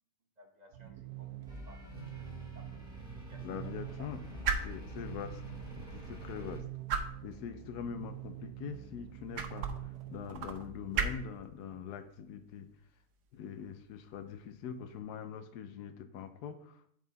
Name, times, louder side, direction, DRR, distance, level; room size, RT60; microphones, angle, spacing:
voice 1, 0.4-2.3 2.5-2.9 3.2-4.1, right 1 dB, 30° right, 1 dB, 0.9 m, -59 dB
sound 1, 0.7-11.4, right 14 dB, 80° right, 1.2 m, -46 dB
sound 2, 1.4-15.0, right 5 dB, 60° right, 0.9 m, -42 dB
sound 3, 1.5-6.6, left 1 dB, 5° right, 1.8 m, -47 dB
voice 2, 3.4-5.4 5.8-6.6 7.2-12.7 13.3-16.9, left 8 dB, 90° left, 10 dB, 1.2 m, -43 dB
8.2 x 4.7 x 4.0 m, 0.66 s
omnidirectional pair, 1.7 m